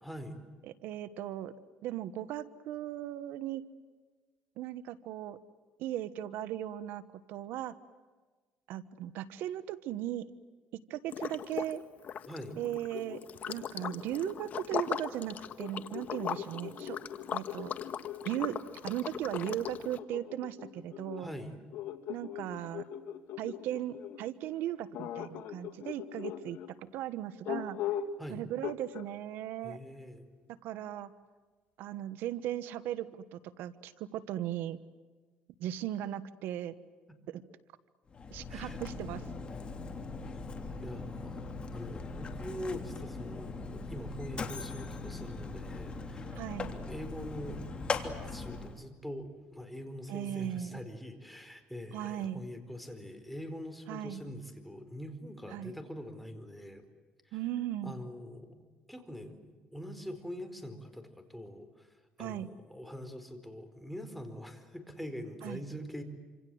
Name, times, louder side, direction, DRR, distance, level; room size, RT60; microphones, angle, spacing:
voice 1, 0.0-0.3 12.3-12.6 21.2-21.5 28.2-28.4 29.6-30.3 37.1-37.2 38.5-38.8 40.8-46.4 46.7-47.6 47.9-56.8 57.2-57.4 57.8-58.6 58.9-61.9 62.2-66.0, equal, ahead, 6 dB, 4.7 m, -44 dB
voice 2, 0.7-1.5 1.8-3.6 4.6-5.4 5.8-7.7 8.7-10.3 10.7-11.8 12.6-13.2 13.5-17.0 17.3-17.7 18.2-21.3 22.1-22.9 23.4-27.8 28.3-29.8 30.5-31.1 31.8-34.8 35.6-36.7 37.3-37.4 38.3-39.3 46.4-46.7 50.1-50.8 51.9-52.4 53.9-54.2 55.5-55.7 57.3-57.9 62.2-62.5 65.4-65.6, right 12 dB, 80° right, 14 dB, 1.2 m, -37 dB
Liquid, 11.1-11.8 12.0-20.0, left 8 dB, 50° left, 1.6 m, -39 dB
sound 1, 12.4-14.8 15.6-18.6 19.4-24.2 24.9-26.7 27.4-28.2 28.6-29.1, left 10 dB, 70° left, 2.7 m, -41 dB
Mechanisms, 38.1-48.8, left 3 dB, 30° left, 3.1 m, -40 dB
28.0 x 26.5 x 7.9 m, 1.4 s
cardioid pair, 105°, 3 cm